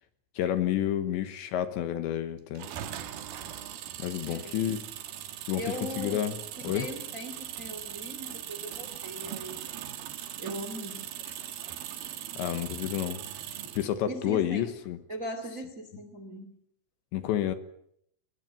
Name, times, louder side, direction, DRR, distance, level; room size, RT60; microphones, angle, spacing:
voice 1, 0.4-2.7 4.0-4.8 5.5-6.4 6.6-6.9 12.4-13.2 13.8-15.0 17.1-17.6, left 11 dB, 75° left, 10 dB, 3.1 m, -30 dB
sound 1, 2.5-13.9, right 11 dB, 65° right, 2.5 m, -40 dB
voice 2, 5.6-6.2 6.6-9.6 10.4-11.1 14.1-14.7 15.1-16.6, right 1 dB, 25° right, 9 dB, 1.8 m, -39 dB
22.5 x 20.0 x 9.1 m, 0.70 s
omnidirectional pair, 5.8 m